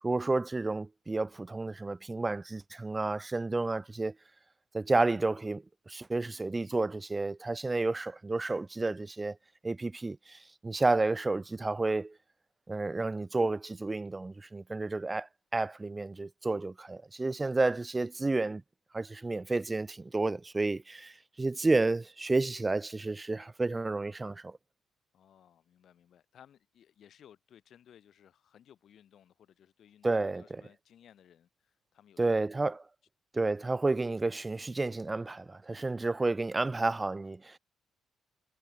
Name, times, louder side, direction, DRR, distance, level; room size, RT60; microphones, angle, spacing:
voice 1, 0.0-4.1 4.7-9.4 9.6-12.2 12.7-18.6 18.9-24.6 30.0-30.4 32.2-32.8 33.3-37.6, right 3 dB, 20° right, 1.1 m, -31 dB
voice 2, 25.1-32.5, left 9 dB, 65° left, 7.5 m, -60 dB
cardioid pair, 90°, 0 cm